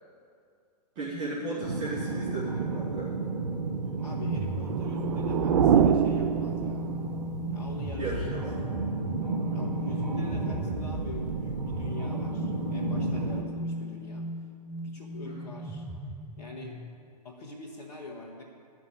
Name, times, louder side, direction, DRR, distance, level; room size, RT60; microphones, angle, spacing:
voice 1, 1.0-3.1 8.0-8.5 10.0-10.2 15.2-15.4, right 2 dB, 35° right, -10 dB, 2.9 m, -35 dB
sound 1, 1.6-13.4, right 3 dB, 75° right, 1.3 m, -33 dB
voice 2, 4.0-6.9 7.5-8.7 9.5-14.3 14.8-15.9 16.4-16.8 17.2-18.4, left 2 dB, 65° left, -4 dB, 1.6 m, -45 dB
sound 2, 4.1-17.0, equal, 5° right, 0.7 m, -37 dB
sound 3, 4.5-7.2, right 8 dB, 55° right, 0.5 m, -25 dB
13.0 x 6.3 x 8.6 m, 2.3 s
hypercardioid pair, 125°, 21 cm